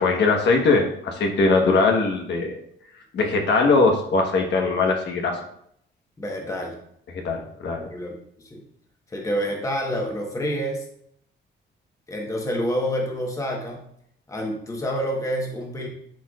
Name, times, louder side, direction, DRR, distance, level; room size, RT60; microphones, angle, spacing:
voice 1, 0.0-2.5 3.1-5.4 7.1-7.9, left 3 dB, 60° left, 2 dB, 1.2 m, -21 dB
voice 2, 6.2-6.8 7.9-8.6 9.1-10.8 12.1-13.8 14.3-15.9, equal, 15° left, 0 dB, 1.2 m, -28 dB
11.5 x 4.7 x 2.4 m, 0.69 s
cardioid pair, 160°, 20 cm